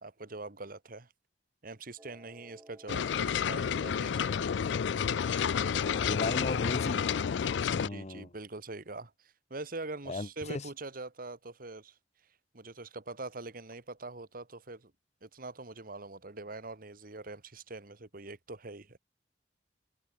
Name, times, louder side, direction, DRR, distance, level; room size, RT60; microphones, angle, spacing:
voice 1, 0.0-1.1 1.6-4.3 7.4-7.6 7.9-11.9 12.5-14.9 15.2-19.0, right 3 dB, 55° right, 1.9 m, -43 dB
sound 1, 2.0-7.6, right 1 dB, 15° right, 2.3 m, -52 dB
sound 2, 2.9-7.9, left 7 dB, 90° left, 0.4 m, -30 dB
voice 2, 5.9-7.1 7.7-8.3 10.1-10.6, left 2 dB, 40° left, 0.8 m, -36 dB
head